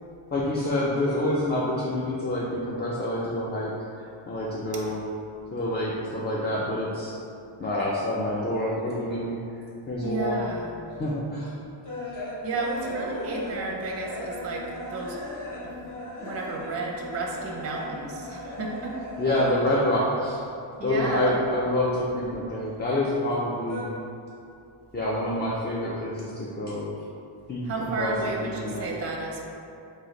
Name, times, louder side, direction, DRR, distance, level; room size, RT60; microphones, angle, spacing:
voice 1, 0.3-5.0 5.5-7.2 7.6-9.4 9.9-10.4 11.0-11.6 19.2-20.4 20.8-23.9 24.9-26.9 27.5-28.9, left 1 dB, 25° left, -5 dB, 0.3 m, -27 dB
voice 2, 10.0-10.7 12.4-14.6 14.9-15.2 16.2-18.9 20.8-21.4 27.6-29.5, right 3 dB, 30° right, -1 dB, 0.5 m, -32 dB
sound 1, 11.0-19.8 20.0-21.2 21.5-22.9 23.2-23.8, left 1 dB, 40° left, 0.7 m, -38 dB
3.2 x 2.7 x 3.7 m, 2.6 s
wide cardioid pair, 95°, 49 cm